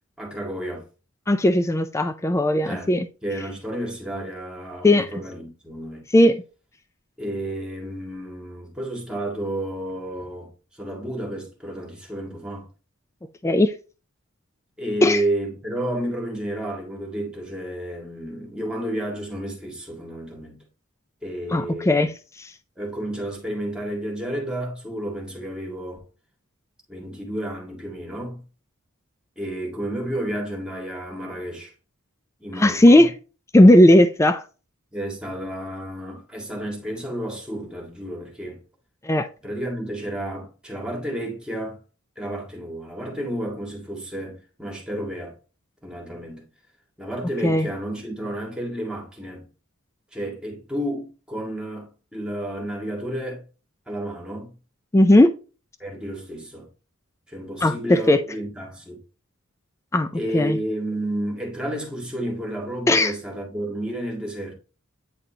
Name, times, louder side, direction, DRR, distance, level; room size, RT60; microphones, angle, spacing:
voice 1, 0.2-0.8 2.6-2.9 3.2-6.0 7.2-12.7 14.8-20.6 21.2-22.1 22.8-26.0 26.9-28.4 29.4-31.7 32.4-33.1 34.9-38.6 39.4-41.8 42.2-45.3 45.8-46.5 47.0-49.5 50.1-53.4 53.9-54.5 55.8-56.7 57.3-59.0 60.1-64.5, right 1 dB, 5° right, 1.8 m, -31 dB
voice 2, 1.3-3.1 4.8-5.1 6.1-6.4 13.4-13.7 15.0-15.2 21.5-22.1 22.4-22.5 32.5-33.1 33.5-34.4 39.0-39.3 47.4-47.7 54.9-55.3 57.6-58.2 59.9-60.1 60.3-60.6 62.9-63.1, left 1 dB, 15° left, 0.3 m, -16 dB
9.0 x 4.2 x 2.8 m
head